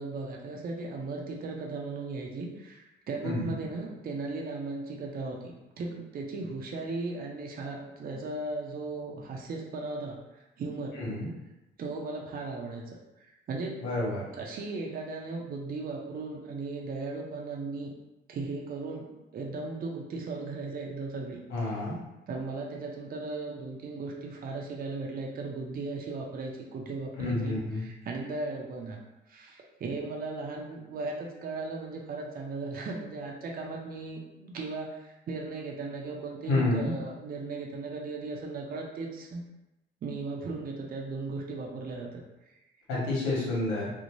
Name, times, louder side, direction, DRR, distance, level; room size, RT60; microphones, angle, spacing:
voice 1, 0.0-11.0 11.8-12.8 13.2-13.9 14.4-17.9 18.3-21.8 22.3-29.0 29.3-39.4 40.0-42.5, right 3 dB, 50° right, -1 dB, 0.5 m, -37 dB
voice 2, 11.0-11.3 13.8-14.2 21.5-21.9 27.2-27.8 36.5-36.9 42.9-43.9, left 2 dB, 85° left, -6 dB, 1.1 m, -29 dB
2.6 x 2.1 x 3.0 m, 0.96 s
cardioid pair, 90°, 20 cm